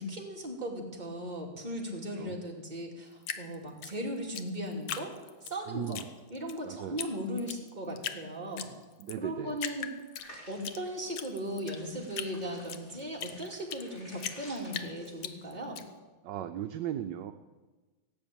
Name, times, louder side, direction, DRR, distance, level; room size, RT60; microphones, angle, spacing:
voice 1, 0.0-5.1 5.4-6.0 6.3-8.7 9.2-9.9 10.3-15.8, equal, 20° right, -1 dB, 2.7 m, -37 dB
Drip, 3.2-5.5 5.9-6.6 7.0-7.1 7.4-8.2 8.6-9.2 9.6-10.8 11.1-13.9 14.2-15.8, left 9 dB, 85° left, 1.7 m, -38 dB
voice 2, 5.7-6.1 6.6-7.1 9.0-9.6 16.2-17.3, right 11 dB, 70° right, 8 dB, 1.3 m, -37 dB
sound 1, 10.1-15.5, equal, 35° left, 3.9 m, -53 dB
17.5 x 8.4 x 8.7 m, 1.2 s
omnidirectional pair, 2.1 m